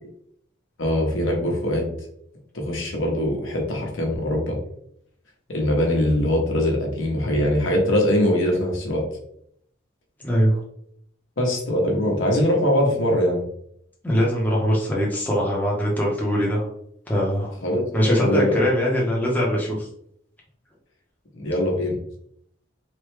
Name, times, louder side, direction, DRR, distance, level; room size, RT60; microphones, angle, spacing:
voice 1, 0.8-1.9 2.5-4.6 5.5-9.0 11.4-13.4 17.6-17.8 18.2-18.6 21.3-22.0, left 1 dB, 80° left, -1 dB, 0.9 m, -22 dB
voice 2, 10.2-10.6 14.0-16.7 17.1-17.5 17.9-19.9, equal, 10° left, -4 dB, 0.7 m, -22 dB
3.4 x 2.2 x 3.1 m, 0.69 s
head